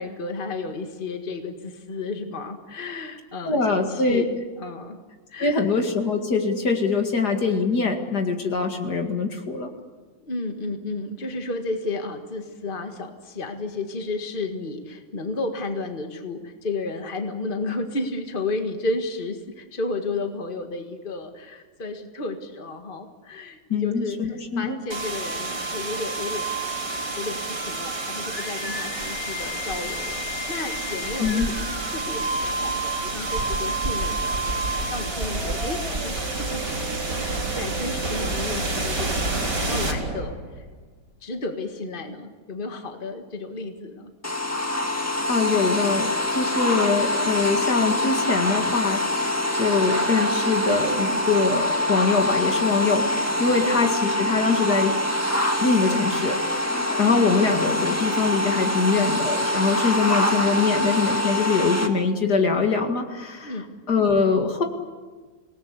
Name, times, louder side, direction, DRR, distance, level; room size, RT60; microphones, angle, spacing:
voice 1, 0.0-5.0 5.3-5.7 10.2-26.5 27.2-37.2 37.6-40.7 41.2-44.1 53.6-53.8 63.4-63.7, left 3 dB, 30° left, 5 dB, 1.9 m, -32 dB
voice 2, 3.5-4.2 5.4-9.7 23.7-24.8 31.2-31.5 44.7-44.8 45.3-49.0 49.5-55.0 55.6-56.4 57.0-63.5 63.9-64.6, left 4 dB, 65° left, 4 dB, 2.6 m, -23 dB
sound 1, 24.9-40.7, right 2 dB, 75° right, 4.3 m, -29 dB
Bird, 29.0-32.6 32.9-36.8, right 1 dB, 40° right, 3.1 m, -35 dB
sound 2, 44.2-61.9, left 1 dB, 10° left, 1.6 m, -24 dB
27.0 x 18.5 x 8.3 m, 1.4 s
omnidirectional pair, 1.9 m